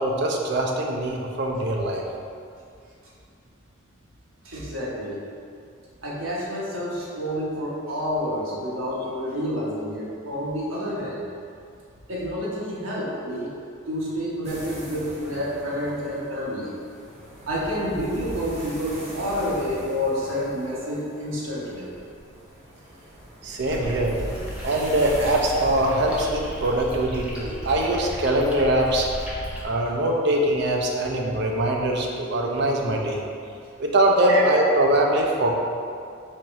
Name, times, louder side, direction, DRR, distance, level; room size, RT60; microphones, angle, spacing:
voice 1, 0.0-2.0 23.4-24.2 24.6-29.1 29.6-33.2 33.8-35.5, right 1 dB, 55° right, 0 dB, 0.5 m, -22 dB
voice 2, 4.4-5.2 6.0-11.2 12.1-13.5 13.9-16.7 17.5-21.9 34.3-34.4, equal, 75° right, -6 dB, 1.1 m, -29 dB
sound 1, 14.4-26.8, equal, 30° right, 1.0 m, -41 dB
sound 2, 23.6-29.7, equal, 5° right, 0.7 m, -35 dB
4.4 x 3.1 x 3.6 m, 2.4 s
head